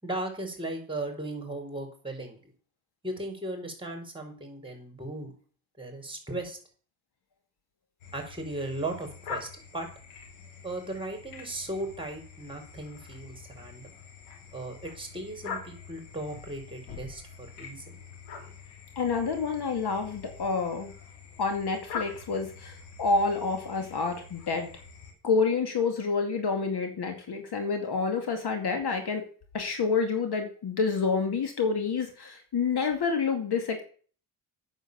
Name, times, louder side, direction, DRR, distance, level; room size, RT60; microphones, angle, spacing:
voice 1, 0.0-2.5 3.0-5.3 5.8-6.6 8.1-9.9 10.6-13.9 14.5-18.0 18.3-18.5, right 2 dB, 10° right, 3 dB, 5.1 m, -37 dB
sound 1, 8.0-25.1, left 5 dB, 90° left, 3.0 m, -45 dB
voice 2, 19.0-20.9 21.4-24.7 25.2-29.2 29.5-33.8, left 4 dB, 50° left, 5 dB, 2.4 m, -28 dB
9.1 x 7.2 x 7.0 m, 0.43 s
supercardioid pair, 70°, 49 cm